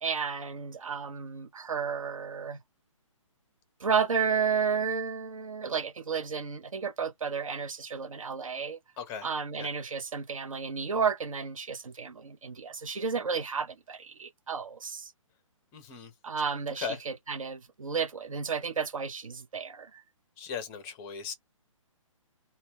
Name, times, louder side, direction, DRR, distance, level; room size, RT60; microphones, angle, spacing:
voice 1, 0.0-2.6 3.8-8.8 9.2-15.1 16.2-20.0, right 6 dB, 75° right, 0.4 m, -32 dB
voice 2, 9.0-9.3 9.6-9.7 15.7-16.1 16.8-17.0 20.4-21.3, left 6 dB, 15° left, 0.5 m, -37 dB
2.1 x 2.0 x 3.3 m
figure-of-eight pair, 130°, 17 cm